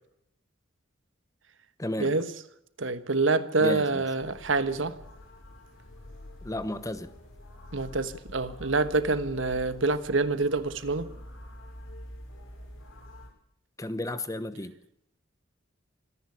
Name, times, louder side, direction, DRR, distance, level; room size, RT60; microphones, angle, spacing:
voice 1, 1.8-2.1 3.6-4.0 6.4-7.1 13.8-14.8, left 1 dB, 15° left, 13 dB, 1.0 m, -33 dB
voice 2, 2.8-5.0 7.7-11.1, right 3 dB, 65° right, 12 dB, 1.3 m, -26 dB
sound 1, 4.2-13.3, left 1 dB, 85° left, 6.1 m, -46 dB
25.5 x 10.5 x 9.9 m, 0.77 s
head